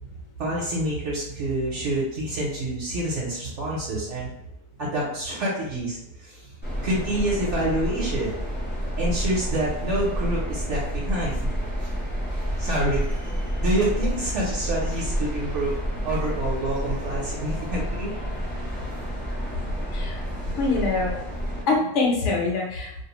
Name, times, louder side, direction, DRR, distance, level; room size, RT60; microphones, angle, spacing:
voice 1, 0.4-4.3 4.8-6.5 6.8-8.4 9.0-11.4 11.8-11.9 12.6-13.0 13.6-15.7 16.0-18.1, right 1 dB, 65° right, -5 dB, 0.9 m, -27 dB
sound 1, 6.6-21.6, equal, 10° left, 0.5 m, -29 dB
voice 2, 20.5-21.1 21.7-22.9, left 3 dB, 65° left, -1 dB, 0.9 m, -24 dB
2.5 x 2.0 x 2.9 m, 0.80 s
omnidirectional pair, 1.4 m